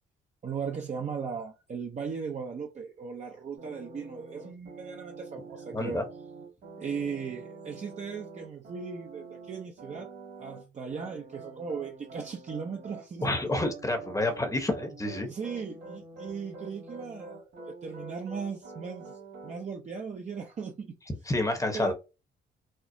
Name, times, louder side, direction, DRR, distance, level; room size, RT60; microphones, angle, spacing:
voice 1, 0.4-6.0 6.8-10.1 10.4-13.3 15.2-17.5 17.8-20.9 21.7-21.9, right 6 dB, 35° right, 0.6 m, -37 dB
sound 1, 3.6-10.6 10.9-19.5, right 4 dB, 60° right, 2.0 m, -46 dB
voice 2, 5.7-6.0 13.2-15.3 21.3-21.9, left 2 dB, 15° left, 0.9 m, -29 dB
4.3 x 2.0 x 2.6 m
cardioid pair, 90°, 20 cm